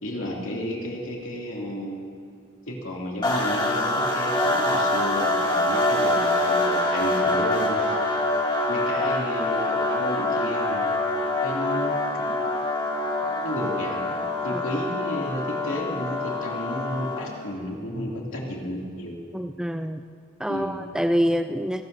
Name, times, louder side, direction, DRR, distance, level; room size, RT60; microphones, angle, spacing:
voice 1, 0.0-2.1 2.7-7.8 8.7-10.9 11.4-12.2 13.2-19.2 20.5-20.8, equal, 60° left, -2 dB, 2.5 m, -32 dB
sound 1, 3.2-17.4, left 1 dB, 20° left, 1.8 m, -25 dB
voice 2, 19.3-20.0 20.4-21.8, equal, 5° right, 7 dB, 0.3 m, -26 dB
29.5 x 12.5 x 2.7 m, 2.4 s
head